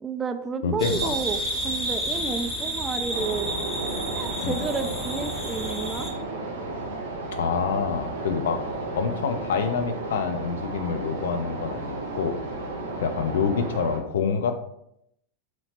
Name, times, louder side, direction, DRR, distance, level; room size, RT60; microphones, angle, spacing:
voice 1, 0.0-3.5 4.1-6.1, right 4 dB, 20° right, 9 dB, 0.3 m, -31 dB
voice 2, 0.6-1.2 4.4-4.6 7.3-8.6 9.0-12.4 13.0-14.5, left 6 dB, 65° left, 7 dB, 0.4 m, -27 dB
sound 1, 0.8-6.1, right 1 dB, 15° left, 1.1 m, -31 dB
sound 2, 3.1-14.0, right 2 dB, 70° right, 0.7 m, -33 dB
2.9 x 2.8 x 4.2 m, 0.77 s
figure-of-eight pair, 90°, 0 cm